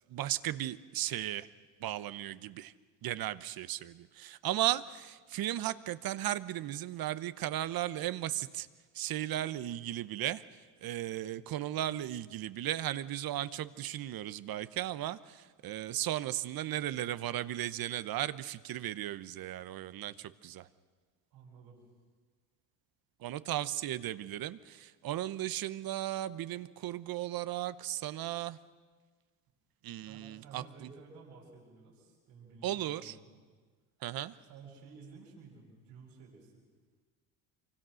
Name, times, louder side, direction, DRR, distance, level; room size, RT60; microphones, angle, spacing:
voice 1, 0.1-1.5 1.8-2.7 3.0-8.7 8.9-20.7 23.2-28.6 29.8-30.9 32.6-33.1 34.0-34.4, right 13 dB, 50° right, 15 dB, 1.0 m, -36 dB
voice 2, 21.3-21.8 30.0-33.3 34.4-36.6, right 4 dB, 85° right, -3 dB, 7.8 m, -53 dB
26.0 x 24.5 x 6.4 m, 1.5 s
supercardioid pair, 95°, 44 cm